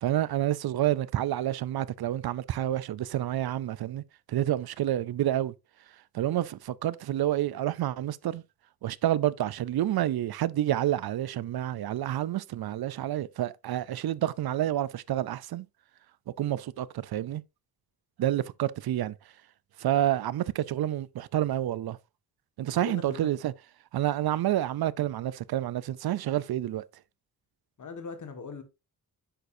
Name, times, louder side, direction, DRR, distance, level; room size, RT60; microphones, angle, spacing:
voice 1, 0.0-5.5 6.1-8.4 8.8-15.7 16.4-17.4 18.2-19.1 19.8-22.0 22.6-23.5 23.9-26.8, right 12 dB, 80° right, 0.5 m, -29 dB
voice 2, 22.6-23.3 27.8-28.6, left 5 dB, 55° left, 1.8 m, -40 dB
9.1 x 6.8 x 2.7 m
wide cardioid pair, 160°, 36 cm